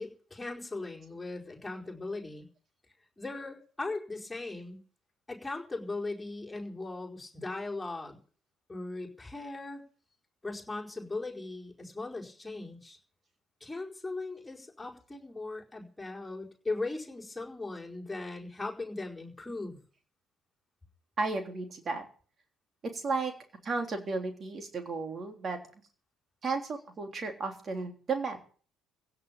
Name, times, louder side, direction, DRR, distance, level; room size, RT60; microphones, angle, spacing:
voice 1, 0.0-2.5 3.2-4.8 5.3-8.2 8.7-9.8 10.4-13.0 13.6-19.8, left 3 dB, 10° left, -2 dB, 4.7 m, -38 dB
voice 2, 21.2-22.0 22.8-23.3 23.6-25.6 26.4-28.4, right 4 dB, 40° right, 4 dB, 3.4 m, -33 dB
16.5 x 7.0 x 8.9 m, 0.41 s
figure-of-eight pair, 50°, 0 cm